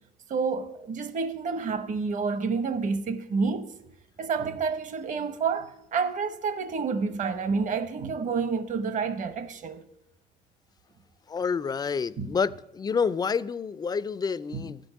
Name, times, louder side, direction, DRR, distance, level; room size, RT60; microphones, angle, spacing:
voice 1, 0.3-3.7 4.2-9.8 12.2-12.3 14.5-14.7, right 5 dB, 50° right, 0.9 m, -29 dB
voice 2, 11.3-14.9, left 5 dB, 25° left, 0.3 m, -28 dB
13.0 x 5.3 x 8.7 m
cardioid pair, 110°, 17 cm